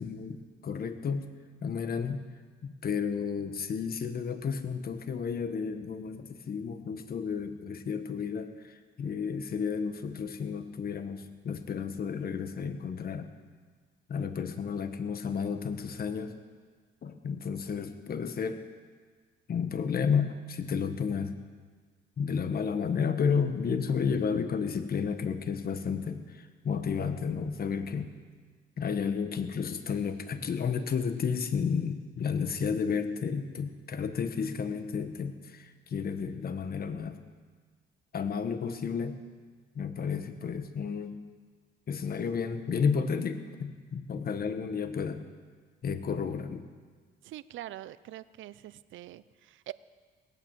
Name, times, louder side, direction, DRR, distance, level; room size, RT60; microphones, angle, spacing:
voice 1, 0.0-1.3 1.6-2.2 2.6-13.3 14.1-16.3 17.0-18.6 19.5-21.3 22.2-28.1 28.8-37.2 38.1-39.2 39.7-41.1 41.9-45.2 45.8-46.7, left 6 dB, 50° left, 9 dB, 1.2 m, -32 dB
voice 2, 47.2-49.7, right 14 dB, 75° right, 16 dB, 0.6 m, -44 dB
18.5 x 9.0 x 7.5 m, 1.5 s
cardioid pair, 90°, 20 cm